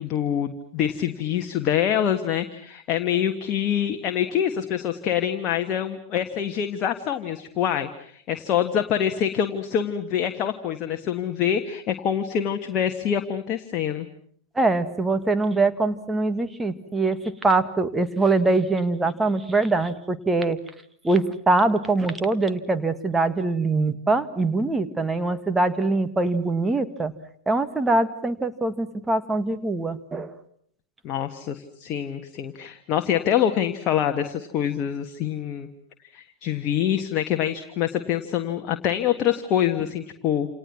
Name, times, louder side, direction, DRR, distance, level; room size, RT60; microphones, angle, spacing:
voice 1, 0.0-14.1 31.0-35.7 36.1-40.5, left 9 dB, 35° left, 6 dB, 1.6 m, -25 dB
voice 2, 14.6-20.6 21.0-27.1 27.5-30.3, right 3 dB, 10° right, 9 dB, 1.9 m, -23 dB
28.5 x 28.0 x 6.0 m, 0.64 s
figure-of-eight pair, 90°, 0 cm